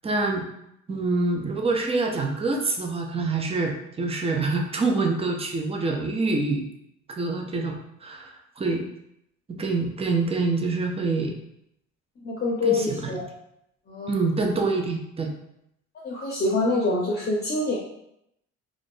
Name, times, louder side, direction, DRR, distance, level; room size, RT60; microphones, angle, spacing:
voice 1, 0.0-0.5 0.9-6.6 7.1-7.7 8.0-8.9 9.6-11.3 12.6-13.2 14.1-15.3, right 3 dB, 20° right, 2 dB, 0.5 m, -26 dB
voice 2, 12.2-13.2 13.9-14.2 16.0-17.8, left 3 dB, 35° left, -3 dB, 0.6 m, -25 dB
2.6 x 2.4 x 3.5 m, 0.79 s
cardioid pair, 90°, 30 cm